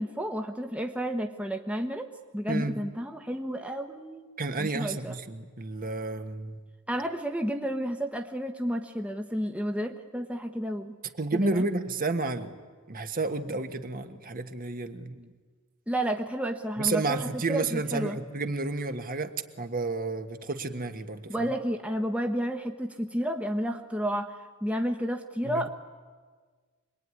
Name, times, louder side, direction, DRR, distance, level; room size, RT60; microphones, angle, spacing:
voice 1, 0.0-4.3 4.6-5.1 6.9-11.0 11.3-11.7 15.9-17.2 17.5-18.2 21.3-24.3 24.6-25.7, equal, 5° right, 5 dB, 1.1 m, -31 dB
voice 2, 2.5-2.8 4.4-6.6 11.2-12.6 12.9-15.3 16.8-19.3 19.6-21.5 25.4-25.7, right 3 dB, 40° right, 7 dB, 1.5 m, -31 dB
25.0 x 21.5 x 9.7 m, 1.5 s
head